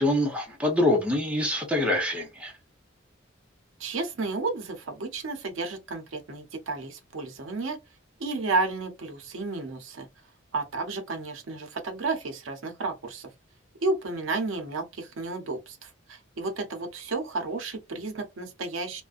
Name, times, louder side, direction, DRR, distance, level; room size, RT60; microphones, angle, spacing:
voice 1, 0.0-2.5, left 1 dB, 5° right, 0.7 m, -25 dB
voice 2, 3.8-7.8 8.2-10.1 10.5-13.3 13.8-19.0, right 3 dB, 80° right, 0.6 m, -32 dB
2.4 x 2.1 x 2.4 m
head